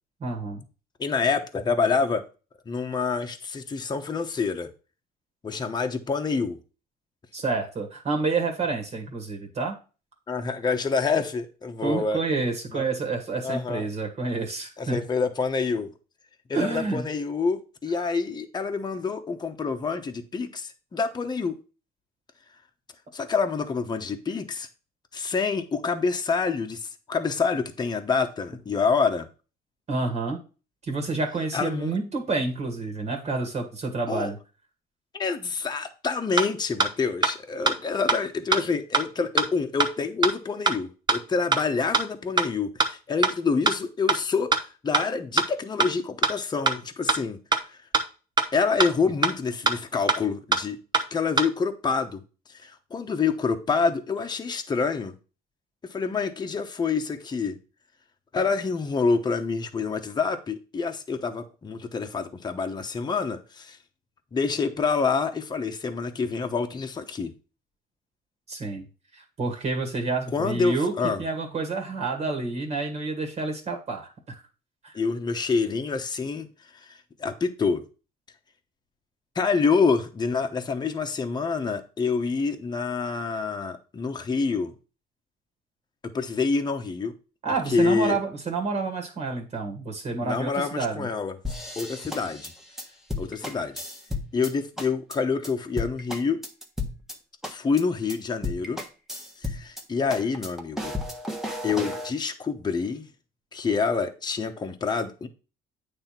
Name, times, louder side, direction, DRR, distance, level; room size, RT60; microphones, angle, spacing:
voice 1, 0.2-0.6 7.3-9.8 11.8-15.0 16.5-17.1 29.9-30.4 30.8-34.4 68.5-68.9 69.1-70.9 71.2-74.4 74.8-75.0 87.4-91.1, right 3 dB, 40° right, 2.0 m, -29 dB
voice 2, 1.0-2.2 2.7-4.7 5.4-6.6 10.3-12.2 12.7-12.8 13.4-13.9 14.8-15.9 16.5-21.6 23.1-24.7 25.1-29.3 31.5-31.9 34.1-34.3 35.1-47.4 47.7-47.8 48.5-50.8 51.1-52.2 52.5-55.1 55.9-57.6 58.3-63.8 64.3-67.3 70.3-71.2 74.9-76.5 76.8-77.8 79.3-84.7 86.1-87.1 87.7-88.2 90.2-91.4 91.8-92.5 93.2-93.8 94.3-96.4 97.5-98.8 99.4-100.9 101.6-103.1 103.5-105.3, left 5 dB, 25° left, 1.0 m, -27 dB
sound 1, 36.4-36.5 36.8-36.9 37.2-37.3 37.7-37.8 38.1-38.2 38.5-38.6 38.9-39.0 39.4-39.5 39.8-39.9 40.2-40.3 40.7-40.8 41.1-41.2 41.5-41.6 41.9-42.0 42.4-42.5 42.8-42.9 43.2-43.3 43.7-43.8 44.1-44.2 44.5-44.6 44.9-45.0 45.4-45.5 45.8-45.9 46.2-46.3 46.7-46.8 47.1-47.2 47.5-47.6 47.9-48.0 48.4-48.5 48.8-48.9 49.2-49.3 49.7-49.8 50.1-50.2 50.5-50.6 50.9-51.0 51.4-51.5, right 4 dB, 25° right, 1.0 m, -21 dB
sound 2, 91.4-94.5 94.8-95.2 95.4-95.5 95.8-97.2 97.4-97.8 98.1-98.2 98.4-99.8 100.1-102.1, left 2 dB, ahead, 1.3 m, -33 dB
8.7 x 3.5 x 5.8 m
cardioid pair, 110°, 17 cm